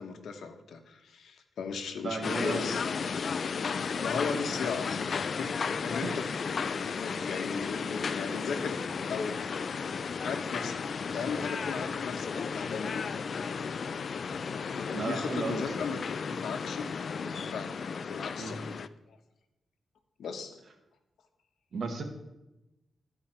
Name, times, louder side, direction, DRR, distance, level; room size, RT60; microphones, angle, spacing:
voice 1, 0.0-2.8 3.7-8.8 9.1-9.5 10.2-13.0 14.6-16.9 17.2-17.8 18.0-18.7 19.1-19.2 20.2-20.6, left 5 dB, 90° left, 6 dB, 1.0 m, -37 dB
voice 2, 2.0-2.7 5.8-6.2 14.9-15.9 18.4-18.6 21.7-22.0, right 4 dB, 55° right, 4 dB, 1.3 m, -35 dB
sound 1, 2.2-18.9, left 5 dB, 55° left, 0.3 m, -34 dB
13.5 x 4.8 x 4.4 m, 0.96 s
wide cardioid pair, 115°, 0 cm